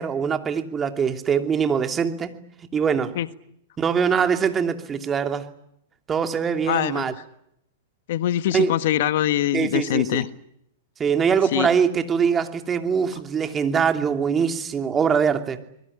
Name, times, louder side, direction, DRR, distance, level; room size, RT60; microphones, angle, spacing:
voice 1, 0.0-2.3 2.7-3.1 3.8-5.5 6.1-7.1 8.5-8.7 9.5-10.2 11.0-15.6, right 6 dB, 20° right, 7 dB, 2.7 m, -23 dB
voice 2, 6.7-7.1 8.1-10.3 11.5-11.7, left 12 dB, 60° left, 13 dB, 1.5 m, -23 dB
25.5 x 22.0 x 10.0 m, 0.76 s
hypercardioid pair, 110°, 0 cm